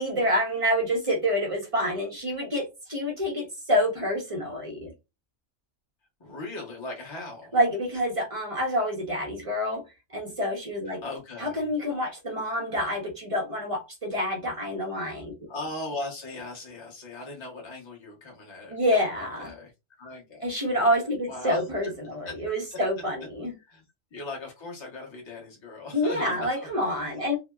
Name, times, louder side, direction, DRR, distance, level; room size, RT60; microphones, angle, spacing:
voice 1, 0.0-4.9 7.5-9.8 10.1-11.0 11.4-15.3 18.7-19.5 20.4-23.5 25.9-27.4, equal, 35° right, 0.5 m, -27 dB
voice 2, 6.2-7.6 10.9-11.7 15.1-15.2 15.5-19.7 20.0-20.7 21.2-21.6 22.2-22.4 22.7-22.8 23.6-23.8 24.1-27.4, left 2 dB, 25° left, 0.8 m, -39 dB
2.7 x 2.1 x 2.2 m
omnidirectional pair, 1.4 m